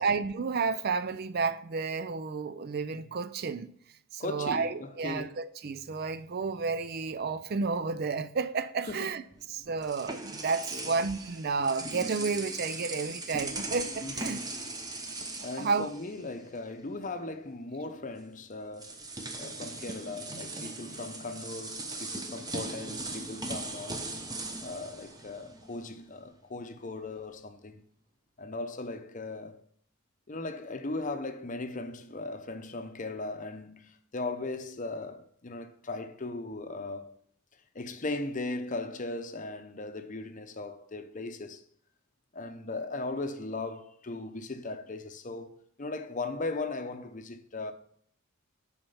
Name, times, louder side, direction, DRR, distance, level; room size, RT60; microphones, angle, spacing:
voice 1, 0.0-3.7 4.1-9.2 9.5-14.4 15.4-15.9, right 4 dB, 45° right, 0.4 m, -31 dB
voice 2, 4.2-5.3 8.9-9.1 10.7-10.9 14.0-14.5 15.4-19.0 19.4-24.1 24.6-27.8 28.4-29.7 30.3-37.1 37.7-41.6 42.3-47.7, left 2 dB, 35° left, 0.8 m, -38 dB
sound 1, 9.3-16.6 16.9-17.1 18.2-18.3 18.7-25.9, right 2 dB, 20° right, 0.9 m, -39 dB
10.5 x 4.4 x 5.6 m
head